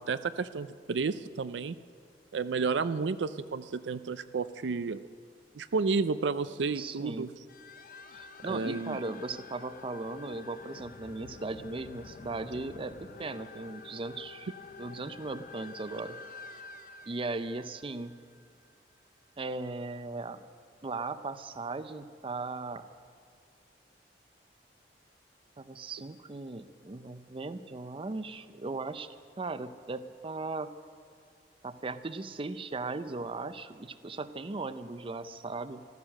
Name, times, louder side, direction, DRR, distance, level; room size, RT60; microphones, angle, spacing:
voice 1, 0.0-1.8 2.3-5.1 5.5-7.3 8.4-9.0, right 4 dB, 85° right, 13 dB, 0.5 m, -31 dB
voice 2, 6.8-7.3 8.1-14.5 14.8-16.2 17.1-18.2 19.4-20.4 20.8-22.9 25.6-29.1 29.3-30.7 31.6-35.9, right 3 dB, 30° right, 12 dB, 0.5 m, -38 dB
sound 1, 7.5-18.7, left 4 dB, 55° left, 0.6 m, -49 dB
14.5 x 13.5 x 6.4 m, 2.3 s
head